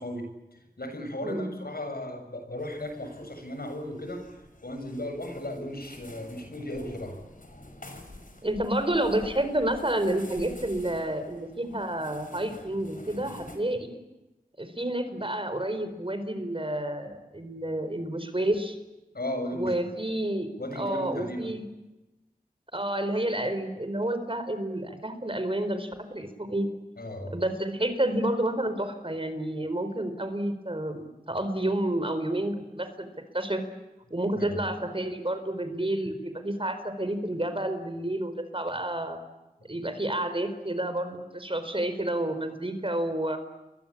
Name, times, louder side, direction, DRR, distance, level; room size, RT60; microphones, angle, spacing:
voice 1, 0.0-4.2 4.6-7.1 19.1-19.7 20.6-21.6 27.0-27.4 34.4-34.6, left 1 dB, 75° left, 5 dB, 7.1 m, -36 dB
voice 2, 1.2-1.6 8.4-14.0 14.6-18.8 19.5-20.5 20.7-21.6 22.7-26.7 27.3-33.1 33.3-33.6 34.1-39.2 39.7-43.4, right 1 dB, 35° right, 9 dB, 4.5 m, -30 dB
sound 1, 2.6-13.6, left 1 dB, 55° left, 5.5 m, -48 dB
29.0 x 23.0 x 8.7 m, 1.0 s
wide cardioid pair, 55°, 16 cm